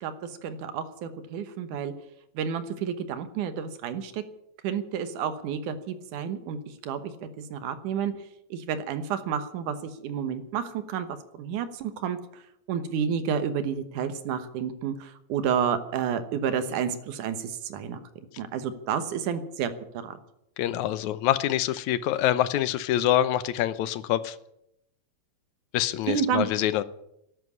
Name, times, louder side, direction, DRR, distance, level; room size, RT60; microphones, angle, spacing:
voice 1, 0.0-1.9 2.4-4.2 4.6-6.6 6.8-8.1 8.5-11.1 11.4-12.2 12.7-18.0 18.4-19.7 20.0-20.2 26.1-26.5, right 7 dB, 75° right, 11 dB, 2.6 m, -30 dB
voice 2, 20.6-24.4 25.7-26.8, left 12 dB, 75° left, 15 dB, 2.0 m, -25 dB
13.5 x 11.0 x 9.6 m, 0.80 s
omnidirectional pair, 3.7 m